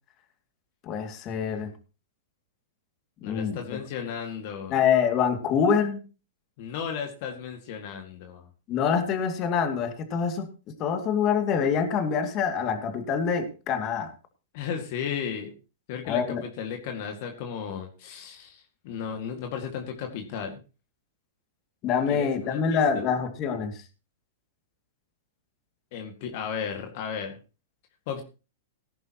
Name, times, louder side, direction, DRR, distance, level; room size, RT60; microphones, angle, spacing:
voice 1, 0.8-1.7 3.2-3.8 4.7-6.0 8.7-10.5 10.8-14.1 16.1-16.4 21.8-23.8, left 7 dB, 35° left, 6 dB, 2.5 m, -25 dB
voice 2, 3.2-4.7 6.6-8.5 14.5-15.5 15.9-20.5 22.1-23.1 25.9-27.4 28.1-28.2, left 7 dB, 55° left, 4 dB, 2.1 m, -35 dB
18.0 x 10.5 x 3.0 m, 0.33 s
hypercardioid pair, 120°, 0 cm